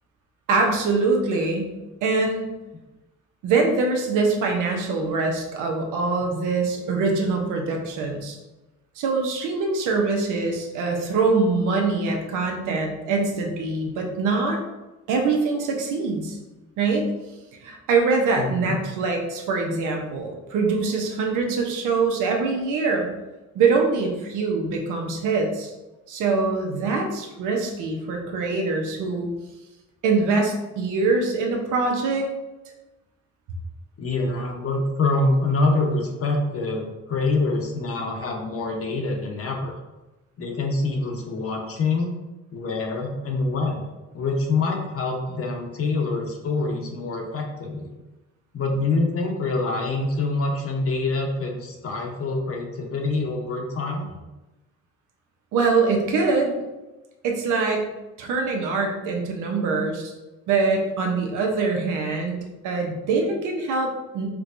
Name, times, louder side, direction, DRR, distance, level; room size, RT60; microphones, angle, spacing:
voice 1, 0.5-1.7 2.0-2.5 3.4-8.4 9.0-14.6 15.1-16.4 16.8-17.1 17.6-23.1 23.5-25.7 26.1-29.3 30.0-32.3 55.5-56.5 57.2-57.9 58.2-60.1 60.5-62.4 62.6-64.3, right 4 dB, 90° right, 2 dB, 0.7 m, -23 dB
voice 2, 18.4-18.8 34.0-39.7 40.4-42.1 42.5-43.8 44.1-47.9 48.5-54.0, left 3 dB, 50° left, 1 dB, 0.8 m, -25 dB
4.5 x 2.2 x 2.5 m, 1.1 s
cardioid pair, 90°, 30 cm